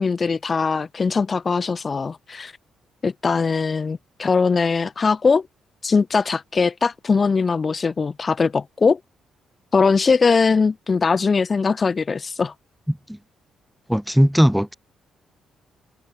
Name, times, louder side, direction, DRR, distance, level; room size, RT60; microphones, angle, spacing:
voice 1, 0.0-2.5 3.0-5.4 5.8-9.0 9.7-12.5, left 4 dB, 35° left, 1.2 m, -20 dB
voice 2, 12.9-13.2 13.9-14.7, equal, ahead, 2.2 m, -18 dB
cardioid pair, 90°, 0 cm